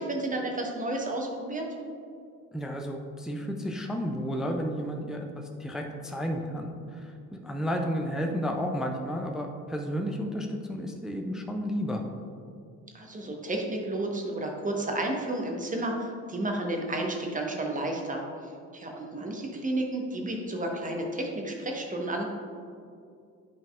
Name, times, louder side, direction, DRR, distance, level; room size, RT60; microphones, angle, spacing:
voice 1, 0.0-1.7 12.9-22.3, right 1 dB, 15° right, 1 dB, 1.0 m, -32 dB
voice 2, 2.5-12.0, equal, ahead, 3 dB, 0.3 m, -32 dB
9.2 x 5.3 x 2.4 m, 2.4 s
figure-of-eight pair, 50°, 47 cm